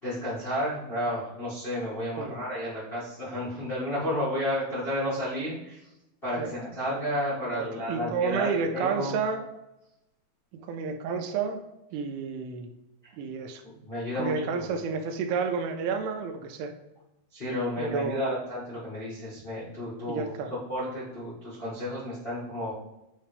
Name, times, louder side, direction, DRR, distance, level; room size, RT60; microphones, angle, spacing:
voice 1, 0.0-5.8 6.2-9.2 9.4-9.5 13.0-13.1 13.6-14.8 17.3-20.4 20.7-22.7, equal, 60° left, -11 dB, 0.5 m, -32 dB
voice 2, 7.5-9.4 10.5-11.6 11.9-12.7 13.2-13.6 14.2-16.7 17.8-18.4 20.1-20.5, right 5 dB, 90° right, 6 dB, 2.7 m, -30 dB
9.2 x 3.3 x 3.3 m, 0.94 s
omnidirectional pair, 4.6 m